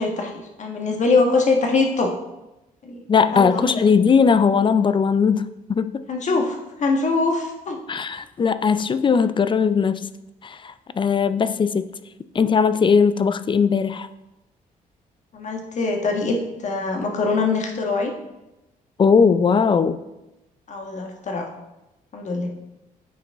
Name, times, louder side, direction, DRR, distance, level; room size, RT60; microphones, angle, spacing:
voice 1, 0.0-2.1 2.8-3.0 3.3-3.8 6.1-7.8 15.3-18.1 20.7-21.5 22.1-22.5, left 3 dB, 50° left, 2 dB, 1.4 m, -23 dB
voice 2, 3.1-6.0 7.9-10.1 10.4-11.9 12.3-14.1 19.0-20.0, left 6 dB, 35° left, 13 dB, 0.4 m, -19 dB
9.1 x 4.9 x 3.6 m, 0.96 s
cardioid pair, 90°, 15 cm